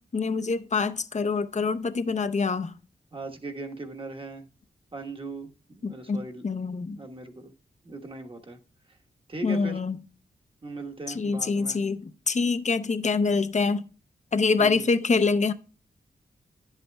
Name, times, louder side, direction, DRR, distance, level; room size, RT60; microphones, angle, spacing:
voice 1, 0.1-2.7 5.8-7.0 9.4-10.0 11.2-13.9 14.3-15.5, left 4 dB, 45° left, 0.6 m, -25 dB
voice 2, 3.1-4.5 4.9-6.4 7.0-7.5 7.8-8.6 8.9-9.0 9.3-9.8 10.6-11.8 14.6-14.9, right 3 dB, 30° right, 1.2 m, -39 dB
9.9 x 8.1 x 2.2 m
cardioid pair, 65°, 17 cm